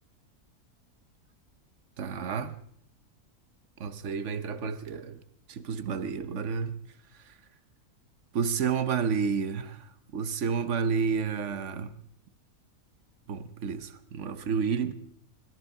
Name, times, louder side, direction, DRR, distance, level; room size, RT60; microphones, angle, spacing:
voice 1, 2.0-2.6 3.8-5.2 5.5-6.7 8.3-9.8 10.1-11.9 13.3-14.9, right 6 dB, 55° right, 1.2 m, -30 dB
21.0 x 14.0 x 4.8 m
omnidirectional pair, 1.6 m